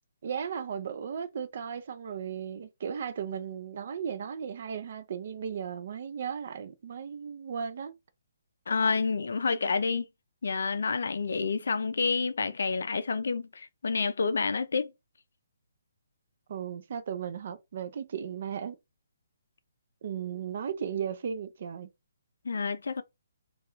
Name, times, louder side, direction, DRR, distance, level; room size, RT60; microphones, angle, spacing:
voice 1, 0.2-7.9 16.5-18.8 20.0-21.9, right 7 dB, 55° right, 0.4 m, -36 dB
voice 2, 8.7-10.1 10.4-14.9 22.4-23.0, left 4 dB, 75° left, 0.4 m, -29 dB
2.3 x 2.3 x 2.9 m
hypercardioid pair, 155°, 0 cm